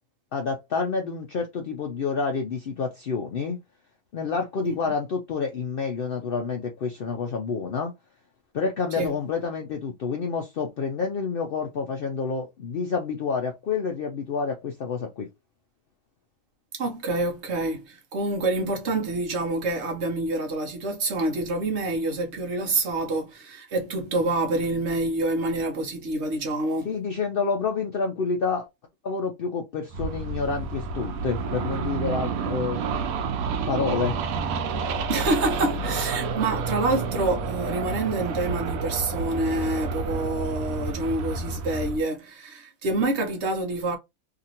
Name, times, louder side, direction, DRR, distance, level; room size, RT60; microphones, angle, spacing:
voice 1, 0.3-3.6 4.1-7.9 8.5-15.3 26.8-28.7 29.0-32.8 33.7-34.2, left 5 dB, 65° left, 0.5 m, -28 dB
voice 2, 16.7-27.0 35.1-44.0, right 2 dB, 60° right, 1.0 m, -27 dB
sound 1, 29.9-42.0, right 5 dB, 80° right, 1.0 m, -29 dB
2.8 x 2.5 x 2.7 m
omnidirectional pair, 1.4 m